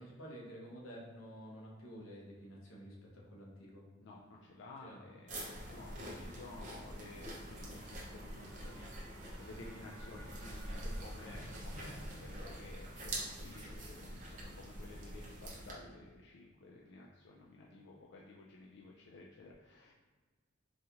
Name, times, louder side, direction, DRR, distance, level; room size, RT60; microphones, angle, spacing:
voice 1, 0.0-3.8 4.8-5.0 5.8-6.2 9.7-9.9 10.7-11.6, equal, 85° left, -3 dB, 0.9 m, -51 dB
voice 2, 4.0-19.9, left 2 dB, 55° left, -2 dB, 0.3 m, -54 dB
sound 1, 5.3-15.7, right 1 dB, 35° right, 0.6 m, -45 dB
sound 2, 7.5-14.4, right 3 dB, 75° right, 0.5 m, -62 dB
4.0 x 2.4 x 2.8 m, 1.4 s
head